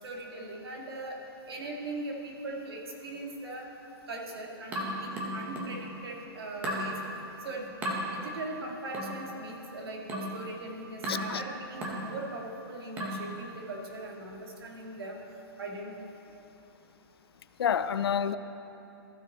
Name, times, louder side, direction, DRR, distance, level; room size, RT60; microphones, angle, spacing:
voice 1, 0.0-1.2 1.5-3.6 4.1-7.0 7.4-15.2 15.6-15.9 16.3-16.4, right 2 dB, 80° right, -1 dB, 2.1 m, -40 dB
sound 1, 4.7-5.8 6.6-6.9 7.8-8.0 8.9-9.2 10.1-10.4 11.0-11.3 11.8-12.1 13.0-13.3, equal, 15° right, 1.0 m, -34 dB
voice 2, 11.1-11.4 17.6-18.4, left 8 dB, 80° left, 13 dB, 0.5 m, -28 dB
14.5 x 6.2 x 4.2 m, 2.9 s
hypercardioid pair, 170°, 13 cm